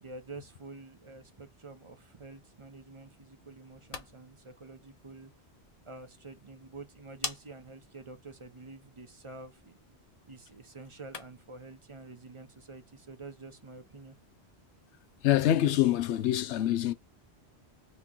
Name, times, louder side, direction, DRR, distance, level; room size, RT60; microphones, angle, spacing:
voice 1, 0.0-5.3 5.9-9.8 10.3-14.2, right 3 dB, 35° right, 0.6 m, -48 dB
sound 1, 3.6-11.6, left 4 dB, 40° left, 0.7 m, -47 dB
voice 2, 15.2-16.9, left 12 dB, 90° left, 0.9 m, -25 dB
2.9 x 2.9 x 3.7 m
omnidirectional pair, 1.1 m